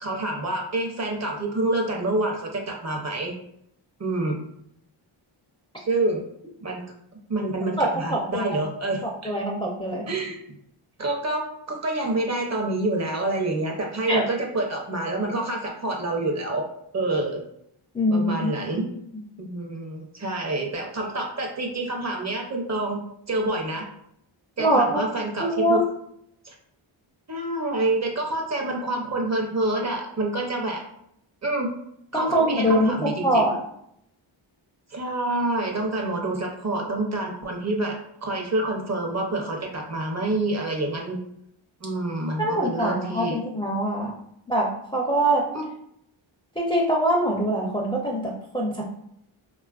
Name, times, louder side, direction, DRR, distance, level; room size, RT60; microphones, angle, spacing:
voice 1, 0.0-3.3 4.0-4.4 5.8-6.2 6.6-6.8 7.3-9.3 10.1-10.4 11.0-16.7 16.9-17.4 18.1-18.9 19.4-23.0 23.3-23.9 24.6-25.8 26.4-26.5 27.3-30.8 31.4-31.7 32.1-33.4 34.9-41.2 41.8-43.4 45.5-45.7, right 2 dB, 35° right, 1 dB, 0.6 m, -27 dB
voice 2, 7.8-8.5 9.2-10.1 14.1-14.2 17.9-18.5 24.6-25.0 25.4-25.8 32.1-33.6 42.4-44.1 44.5-45.4 46.6-48.9, right 1 dB, 10° left, -3 dB, 0.4 m, -23 dB
3.1 x 2.3 x 2.3 m, 0.73 s
wide cardioid pair, 80°, 49 cm